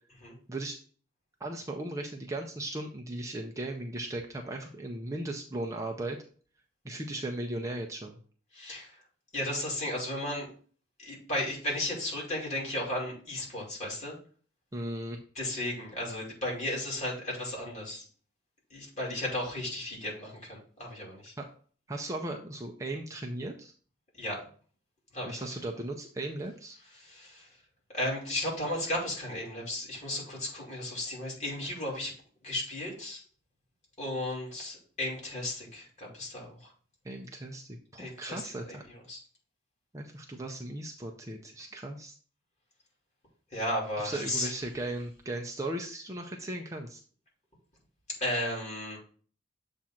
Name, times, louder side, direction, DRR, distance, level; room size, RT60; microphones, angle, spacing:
voice 1, 1.4-6.2 6.8-8.2 14.7-15.2 21.4-21.5 21.9-23.7 25.3-26.8 37.0-38.8 39.9-42.1 44.0-47.0, right 1 dB, 15° right, 1 dB, 0.5 m, -37 dB
voice 2, 8.5-9.0 9.3-10.5 11.0-14.2 15.3-18.1 18.7-21.3 24.2-24.5 25.1-25.4 27.0-27.5 27.9-32.1 32.4-33.2 34.0-36.7 38.0-38.8 39.1-39.2 43.5-44.5 48.2-49.0, left 1 dB, 35° left, -3 dB, 2.5 m, -34 dB
7.2 x 2.5 x 5.7 m, 0.43 s
head